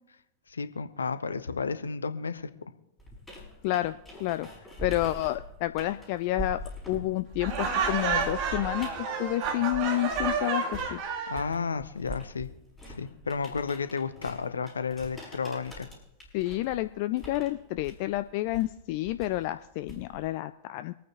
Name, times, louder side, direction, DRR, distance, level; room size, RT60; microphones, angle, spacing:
voice 1, 0.5-2.5 11.3-12.5 12.9-15.9, left 5 dB, 75° left, 12 dB, 0.8 m, -32 dB
sound 1, 3.0-10.4 10.7-20.3, equal, 10° left, 5.6 m, -43 dB
voice 2, 3.6-4.5 4.8-6.6 6.9-11.0 16.3-20.9, left 16 dB, 45° left, 13 dB, 0.4 m, -30 dB
Laughter, 7.4-11.5, right 5 dB, 45° right, 2.0 m, -30 dB
25.5 x 9.2 x 3.0 m, 0.82 s
figure-of-eight pair, 90°, 0 cm